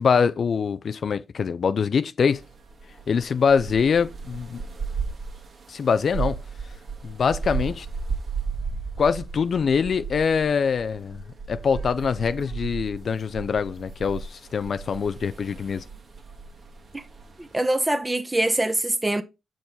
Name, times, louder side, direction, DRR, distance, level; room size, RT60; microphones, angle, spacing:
voice 1, 0.0-2.4 3.1-4.6 5.7-6.4 7.0-7.9 9.0-11.2 11.5-15.8, left 6 dB, 60° left, 0.4 m, -24 dB
sound 1, 2.3-17.7, right 5 dB, 55° right, 1.6 m, -35 dB
voice 2, 17.4-19.2, right 1 dB, 20° right, 1.0 m, -24 dB
7.3 x 4.7 x 4.0 m
hypercardioid pair, 45°, 0 cm